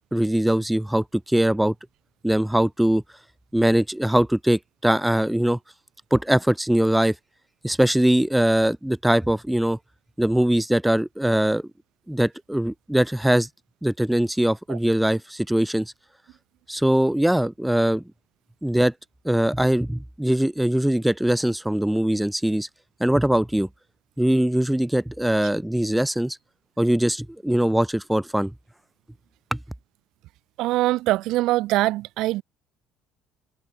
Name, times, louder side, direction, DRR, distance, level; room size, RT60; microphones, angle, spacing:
voice 1, 0.1-1.7 2.2-3.0 3.5-5.6 6.1-7.1 7.6-9.8 10.2-11.6 12.1-13.5 13.8-15.9 16.7-18.0 18.6-18.9 19.2-22.7 23.0-23.7 24.2-26.4 26.8-28.5 29.5-29.6, right 1 dB, 5° right, 1.6 m, -21 dB
voice 2, 30.6-32.4, right 17 dB, 70° right, 0.3 m, -22 dB
cardioid pair, 145°, 0 cm